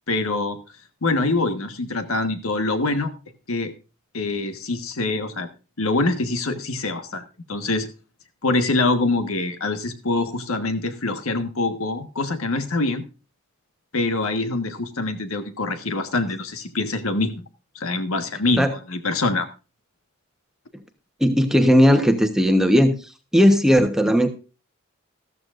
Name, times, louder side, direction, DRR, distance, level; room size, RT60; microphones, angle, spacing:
voice 1, 0.1-0.6 1.0-3.1 3.5-3.7 4.1-5.5 5.8-7.2 7.5-7.9 8.4-13.0 13.9-17.4 17.7-19.5, left 2 dB, 70° left, 8 dB, 1.4 m, -24 dB
voice 2, 21.2-22.9 23.3-24.3, equal, ahead, 6 dB, 1.0 m, -16 dB
14.0 x 13.5 x 2.5 m, 0.32 s
head